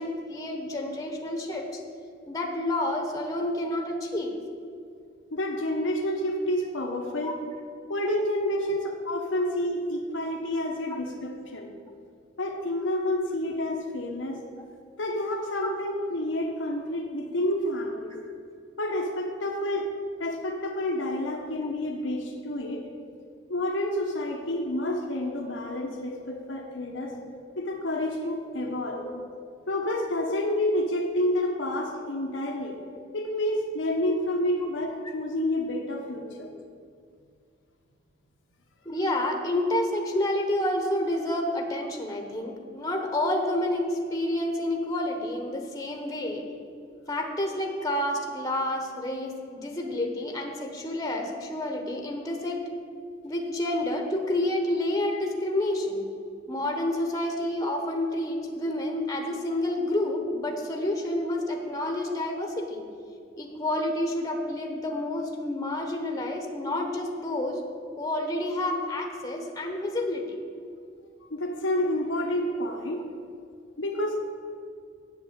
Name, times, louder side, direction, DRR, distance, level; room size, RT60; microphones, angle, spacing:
voice 1, 0.0-1.8 2.3-4.3 7.2-7.4 8.7-8.8 18.1-18.2 27.1-27.2 28.9-29.2 38.8-46.5 47.1-52.6 53.2-56.1 56.5-62.8 63.3-67.6 68.0-70.2, left 1 dB, 20° left, 3 dB, 1.1 m, -29 dB
voice 2, 5.3-7.3 7.9-11.7 12.4-14.4 15.0-18.2 18.7-19.9 20.2-22.8 23.5-27.1 27.5-29.0 29.7-32.8 33.1-36.5 71.3-73.0 73.8-74.2, left 1 dB, 90° left, 1 dB, 1.1 m, -29 dB
8.2 x 7.9 x 8.2 m, 2.3 s
head